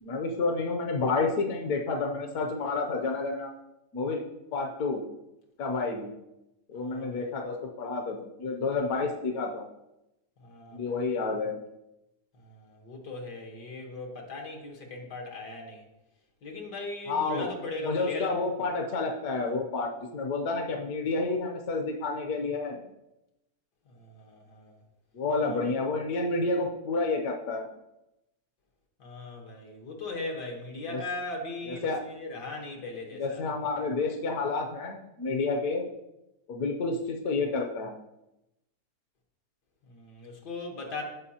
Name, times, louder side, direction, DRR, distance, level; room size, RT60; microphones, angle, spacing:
voice 1, 0.0-3.5 3.9-4.2 4.5-5.0 5.6-6.1 6.7-9.6 10.7-11.6 17.1-17.5 17.8-22.8 25.1-27.7 30.9-31.0 31.7-32.0 33.2-35.8 36.5-38.0, left 3 dB, 65° left, 1 dB, 1.2 m, -30 dB
voice 2, 6.7-7.3 10.4-11.2 12.4-15.8 16.4-18.7 23.9-24.7 25.4-25.7 29.0-33.4 39.9-41.0, left 2 dB, 80° left, 1 dB, 1.9 m, -39 dB
13.5 x 4.7 x 2.8 m, 0.91 s
omnidirectional pair, 1.8 m